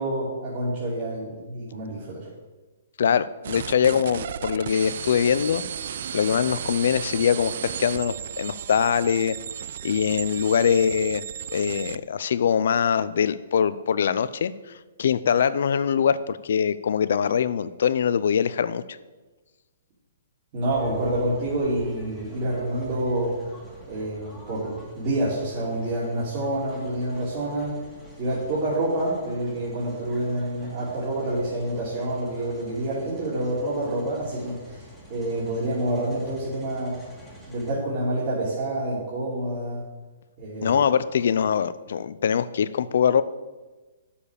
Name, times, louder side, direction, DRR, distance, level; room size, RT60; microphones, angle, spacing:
voice 1, 0.0-2.3 20.5-23.4 23.9-27.8 28.2-37.0 37.5-39.8 40.4-40.8, right 1 dB, 40° right, -8 dB, 3.1 m, -28 dB
voice 2, 3.0-9.4 9.8-11.2 11.5-14.5 15.0-18.8 40.6-43.2, left 7 dB, 70° left, 15 dB, 0.5 m, -23 dB
sound 1, 3.4-12.0, right 9 dB, 60° right, 0.4 m, -34 dB
sound 2, 20.7-37.7, equal, 5° right, 2.0 m, -46 dB
10.0 x 7.1 x 6.6 m, 1.2 s
hypercardioid pair, 150°, 0 cm